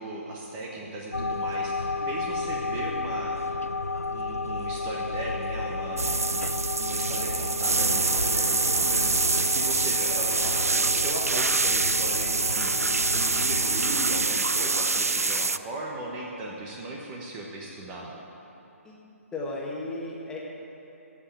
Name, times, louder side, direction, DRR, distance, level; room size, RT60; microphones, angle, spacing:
voice 1, 0.0-3.4 4.1-18.2, right 2 dB, 20° right, -2 dB, 1.3 m, -37 dB
sound 1, 1.1-14.3, left 3 dB, 90° left, 0.4 m, -33 dB
sound 2, 6.0-15.6, right 3 dB, 80° right, 0.4 m, -25 dB
voice 2, 18.8-20.4, left 2 dB, 10° left, -4 dB, 1.7 m, -36 dB
15.0 x 5.8 x 9.0 m, 2.9 s
figure-of-eight pair, 135°, 8 cm